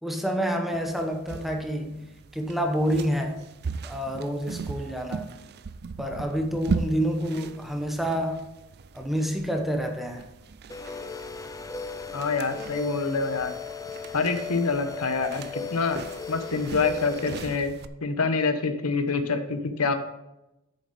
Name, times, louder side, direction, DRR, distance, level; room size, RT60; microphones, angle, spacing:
voice 1, 0.0-3.4 3.8-5.3 6.0-8.4 8.9-10.2, equal, ahead, 3 dB, 1.0 m, -28 dB
sound 1, 0.7-17.9, right 4 dB, 50° right, 0.5 m, -38 dB
sound 2, 10.7-17.6, left 5 dB, 15° left, 0.4 m, -37 dB
voice 2, 12.1-13.5 14.1-17.7 18.0-19.9, left 4 dB, 80° left, 8 dB, 1.0 m, -26 dB
8.5 x 6.9 x 5.1 m, 0.92 s
head